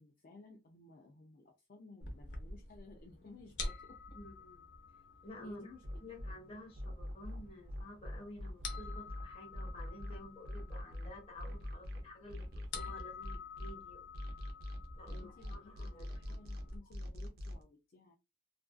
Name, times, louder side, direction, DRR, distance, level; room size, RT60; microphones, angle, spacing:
voice 1, 0.0-4.0 5.4-6.1 15.1-18.1, left 3 dB, 50° left, 0.4 m, -57 dB
sound 1, 2.0-16.8, left 3 dB, 70° left, 0.7 m, -49 dB
voice 2, 4.1-4.6 5.2-5.7 6.0-12.4 12.7-14.0 15.0-16.4, left 1 dB, 30° left, 1.0 m, -51 dB
sound 2, 5.8-6.3 6.8-13.7 14.1-17.6, left 1 dB, 55° right, 0.6 m, -43 dB
2.5 x 2.3 x 2.3 m
head